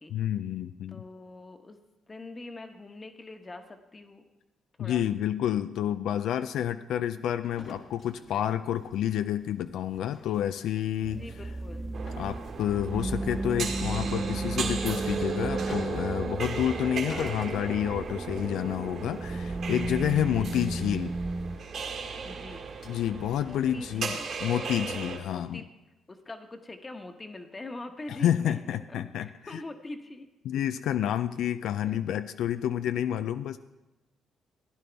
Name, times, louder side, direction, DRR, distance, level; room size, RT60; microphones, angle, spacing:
voice 1, 0.1-1.0 4.8-11.2 12.2-21.1 22.9-25.6 28.1-29.6 30.4-33.6, left 10 dB, 80° left, 11 dB, 0.3 m, -29 dB
voice 2, 0.9-1.8 2.1-4.3 4.8-5.0 11.0-11.9 20.4-20.5 22.2-22.7 23.4-24.3 25.3-25.6 26.1-28.8 29.2-30.3 31.8-32.0, left 2 dB, 25° left, 6 dB, 1.1 m, -43 dB
sound 1, 7.4-25.3, left 3 dB, 55° left, 1.3 m, -51 dB
sound 2, 11.0-21.6, right 3 dB, 20° right, 0.4 m, -34 dB
sound 3, 11.9-25.2, right 5 dB, 60° right, 2.0 m, -36 dB
15.5 x 10.0 x 3.4 m, 1.0 s
cardioid pair, 90°, 0 cm